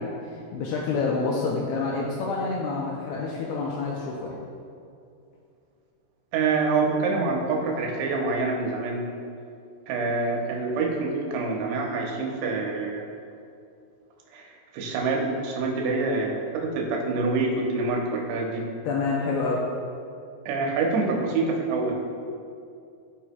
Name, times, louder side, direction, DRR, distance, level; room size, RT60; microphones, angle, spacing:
voice 1, 0.0-4.4 18.9-19.7, left 4 dB, 85° left, -3 dB, 2.2 m, -28 dB
voice 2, 6.3-9.1 9.9-13.0 14.3-18.6 20.5-21.9, right 3 dB, 80° right, 0 dB, 2.8 m, -26 dB
14.0 x 4.8 x 2.2 m, 2.5 s
omnidirectional pair, 4.9 m